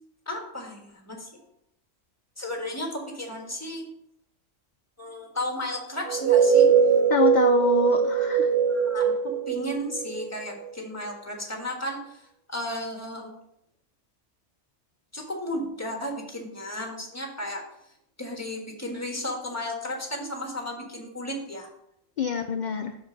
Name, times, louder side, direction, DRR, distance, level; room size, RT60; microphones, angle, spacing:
voice 1, 0.3-1.3 2.4-3.8 5.0-6.7 8.7-9.1 9.5-12.2 12.5-13.4 15.1-17.6 18.2-21.7, left 1 dB, 15° left, 1 dB, 1.4 m, -34 dB
sound 1, 6.0-10.6, right 7 dB, 45° right, 3.2 m, -21 dB
voice 2, 7.1-8.5 22.2-23.0, left 6 dB, 70° left, 7 dB, 0.4 m, -26 dB
6.2 x 5.1 x 5.2 m, 0.74 s
omnidirectional pair, 1.3 m